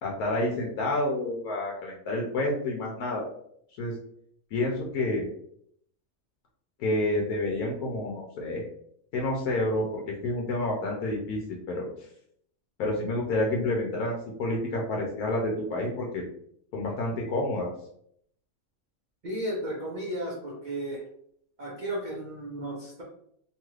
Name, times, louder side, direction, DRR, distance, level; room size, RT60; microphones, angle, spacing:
voice 1, 0.0-3.3 3.8-3.9 4.5-5.3 6.8-8.6 9.1-12.1 12.8-16.2 16.7-17.7, left 1 dB, 85° left, -1 dB, 1.1 m, -29 dB
voice 2, 19.2-21.0 21.6-23.0, right 1 dB, 60° right, -3 dB, 0.5 m, -34 dB
3.0 x 2.4 x 3.1 m, 0.69 s
omnidirectional pair, 1.5 m